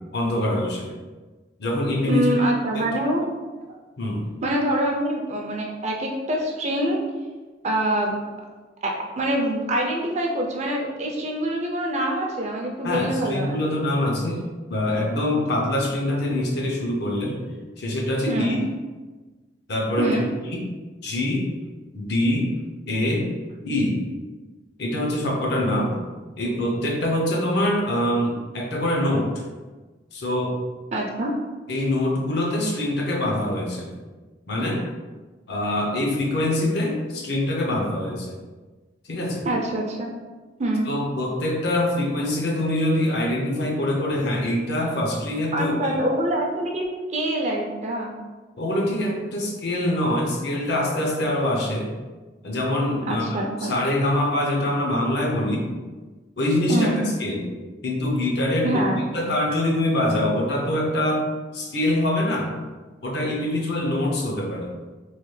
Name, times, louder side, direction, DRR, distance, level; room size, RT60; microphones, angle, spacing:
voice 1, 0.1-0.9 1.6-2.3 2.7-2.8 4.0-4.3 12.8-17.4 17.8-18.5 19.7-20.2 20.5-20.6 21.0-21.5 21.9-22.5 22.9-23.3 23.6-24.0 24.8-26.0 26.4-29.4 30.1-30.6 31.7-33.9 34.5-34.8 35.5-38.3 39.1-39.5 40.9-46.0 48.6-51.9 52.4-53.2 53.6-55.7 56.4-56.9 57.2-57.4 57.8-58.8 59.1-61.3 61.5-62.5 63.0-64.7, left 1 dB, 65° left, -1 dB, 0.6 m, -24 dB
voice 2, 2.1-3.2 4.4-7.0 7.6-8.2 8.8-13.6 18.3-18.6 20.0-20.3 30.9-31.3 39.4-40.1 40.6-40.9 45.5-46.9 47.1-48.1 53.1-53.7 56.7-57.0 58.6-59.0, right 1 dB, 40° right, 0 dB, 0.4 m, -25 dB
3.1 x 2.2 x 3.1 m, 1.3 s
head